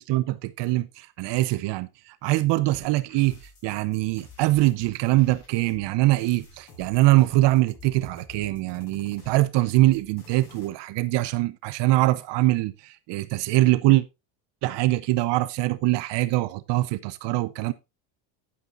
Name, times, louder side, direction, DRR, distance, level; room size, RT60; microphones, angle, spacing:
voice 1, 0.0-14.0 14.6-17.7, right 18 dB, 60° right, 0.8 m, -23 dB
sound 1, 2.7-10.7, left 3 dB, 40° left, 7.4 m, -49 dB
11.0 x 9.6 x 2.5 m
cardioid pair, 130°, 49 cm